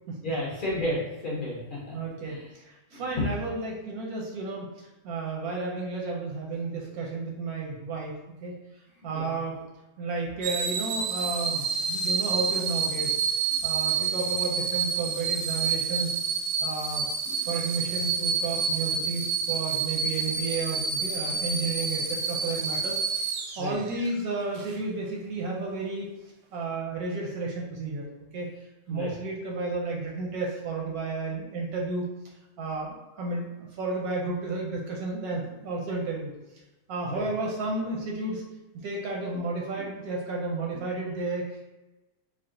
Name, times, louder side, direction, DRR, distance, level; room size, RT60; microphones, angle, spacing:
voice 1, 0.2-2.0 2.2-2.5 2.9-3.0 9.1-9.3 17.2-17.5 23.6-23.8 28.9-29.1 37.0-37.2, left 1 dB, 50° left, -5 dB, 0.6 m, -33 dB
voice 2, 1.9-8.1 8.4-8.6 9.0-9.6 10.0-13.2 13.6-16.2 16.6-17.1 17.4-23.2 23.6-26.1 26.5-28.1 28.3-32.1 32.6-36.3 36.9-38.4 38.7-41.6, right 3 dB, 70° right, -2 dB, 0.9 m, -32 dB
sound 1, 10.4-24.1 24.5-24.7, right 5 dB, 85° right, 1.3 m, -29 dB
3.7 x 2.3 x 3.7 m, 1.1 s
omnidirectional pair, 2.0 m